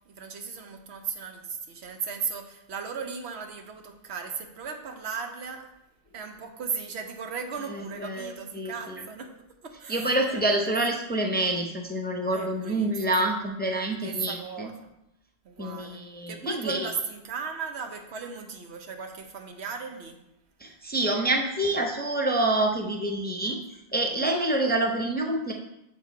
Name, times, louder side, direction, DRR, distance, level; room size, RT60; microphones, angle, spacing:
voice 1, 0.1-5.7 6.1-9.3 9.6-10.7 12.3-13.0 14.0-14.8 15.4-16.0 16.3-20.2, right 5 dB, 90° right, 5 dB, 1.1 m, -36 dB
voice 2, 7.7-9.0 9.9-14.7 15.6-16.9 20.6-23.6 23.9-25.5, right 1 dB, 10° left, 2 dB, 0.5 m, -27 dB
6.8 x 4.2 x 4.6 m, 0.86 s
omnidirectional pair, 1.1 m